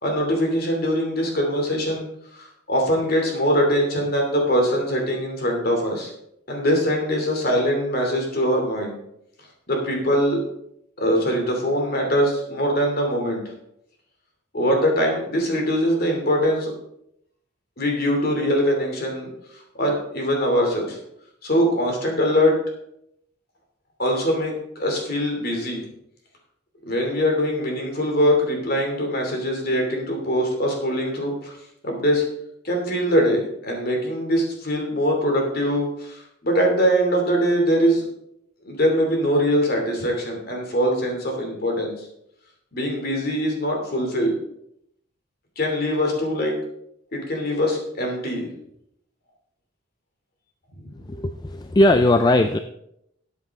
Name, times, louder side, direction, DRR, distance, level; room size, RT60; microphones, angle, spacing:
voice 1, 0.0-2.1 2.3-6.1 6.5-9.0 9.7-10.4 11.0-13.4 14.5-16.7 17.8-19.3 19.8-21.0 21.4-22.6 24.0-24.5 24.8-25.8 26.9-31.6 31.8-32.2 32.6-38.0 38.6-41.9 42.7-44.3 45.6-46.6 47.1-48.5 50.8-50.9, equal, 45° left, 1 dB, 2.8 m, -22 dB
voice 2, 51.1-52.6, left 1 dB, 20° left, 8 dB, 0.4 m, -18 dB
13.5 x 8.3 x 3.7 m, 0.76 s
head